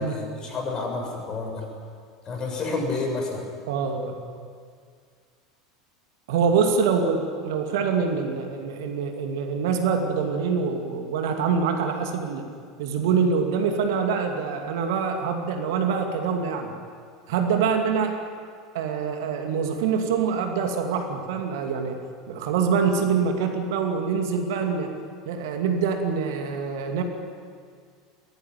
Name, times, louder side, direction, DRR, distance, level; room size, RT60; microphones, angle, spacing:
voice 1, 0.0-1.6 2.2-3.4, left 3 dB, 30° left, 2 dB, 6.8 m, -29 dB
voice 2, 3.7-4.1 6.3-12.4 12.8-16.7 17.3-18.2 18.7-22.0 22.3-24.9 25.3-27.0, right 6 dB, 60° right, 4 dB, 2.5 m, -25 dB
22.5 x 17.5 x 9.5 m, 2.1 s
figure-of-eight pair, 75°, 2 cm